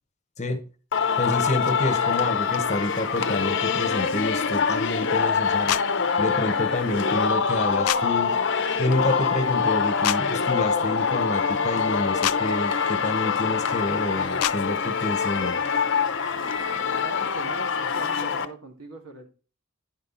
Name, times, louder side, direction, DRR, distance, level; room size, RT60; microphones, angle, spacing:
voice 1, 0.4-0.7 1.2-5.8 6.2-8.3 8.8-15.6, left 2 dB, 30° left, 7 dB, 1.1 m, -28 dB
Singing, 0.9-18.4, left 6 dB, 55° left, 0.8 m, -25 dB
sound 1, 5.7-5.8 7.9-8.0 10.0-10.2 12.2-12.4 14.4-14.6, left 14 dB, 85° left, 0.3 m, -24 dB
voice 2, 16.7-19.3, right 2 dB, 75° right, 3 dB, 2.2 m, -41 dB
10.5 x 5.5 x 4.0 m, 0.36 s
head